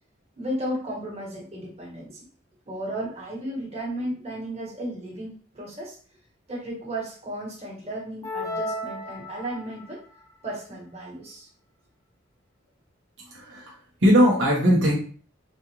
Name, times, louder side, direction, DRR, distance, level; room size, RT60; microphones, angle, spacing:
voice 1, 0.4-2.2 2.7-6.0 6.5-10.0 10.4-11.5, right 1 dB, 35° right, -4 dB, 1.5 m, -34 dB
sound 1, 8.2-9.9, left 1 dB, 15° left, 0.6 m, -33 dB
voice 2, 13.2-15.0, equal, 70° right, -4 dB, 1.0 m, -20 dB
4.1 x 2.4 x 3.0 m, 0.42 s
head